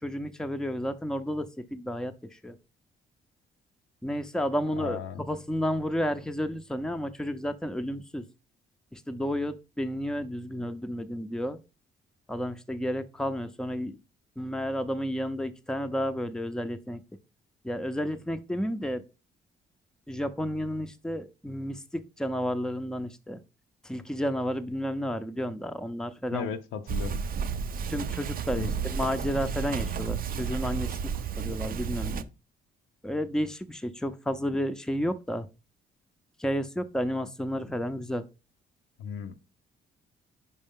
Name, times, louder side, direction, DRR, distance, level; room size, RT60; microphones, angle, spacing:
voice 1, 0.0-2.6 4.0-8.3 8.9-11.6 12.3-14.0 14.4-17.0 17.6-19.0 20.1-23.4 23.8-26.5 27.9-32.3 33.0-35.5 36.4-38.2, equal, 5° left, 0.6 m, -31 dB
voice 2, 4.8-5.2 26.3-27.2 28.6-28.7 39.0-39.3, left 7 dB, 85° left, 0.7 m, -36 dB
sound 1, 26.9-32.2, right 6 dB, 50° right, 0.5 m, -32 dB
5.4 x 4.8 x 3.6 m
cardioid pair, 90°, 20 cm